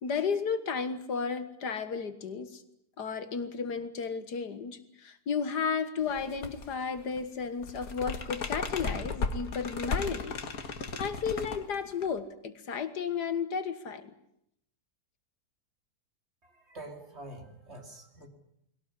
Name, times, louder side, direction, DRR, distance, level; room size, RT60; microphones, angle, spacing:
voice 1, 0.0-2.6 3.0-10.4 11.0-14.1, left 6 dB, 75° left, 11 dB, 2.1 m, -33 dB
sound 1, 6.1-6.7 7.0-12.2, left 4 dB, 60° left, 2.1 m, -35 dB
voice 2, 16.4-18.3, right 1 dB, 40° right, 4 dB, 3.4 m, -46 dB
22.0 x 17.5 x 9.8 m, 0.75 s
omnidirectional pair, 1.8 m